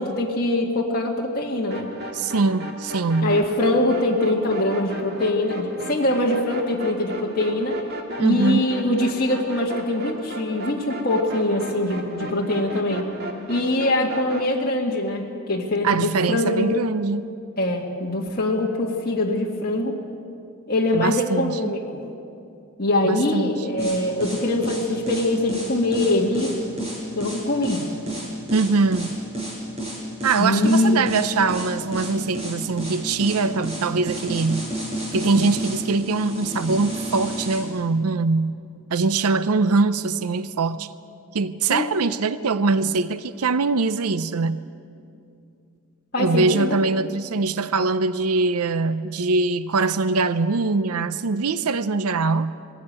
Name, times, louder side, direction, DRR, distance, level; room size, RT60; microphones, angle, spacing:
voice 1, 0.0-1.9 3.2-7.8 8.2-13.1 13.5-16.7 17.6-20.0 20.7-22.0 22.8-26.6 27.1-27.9 30.4-31.1 41.7-41.9 46.1-46.8, left 1 dB, 40° left, -2 dB, 1.9 m, -23 dB
sound 1, 1.7-14.5, right 1 dB, 45° right, 2.1 m, -35 dB
voice 2, 2.1-3.4 8.2-8.6 15.8-17.3 20.9-21.7 23.0-23.7 28.5-29.1 30.2-34.6 35.1-38.5 38.9-40.9 41.3-44.6 46.2-52.5, right 3 dB, 90° right, 14 dB, 0.6 m, -22 dB
sound 2, 23.8-37.6, right 1 dB, 30° right, 6.4 m, -31 dB
20.5 x 16.0 x 8.8 m, 2.5 s
head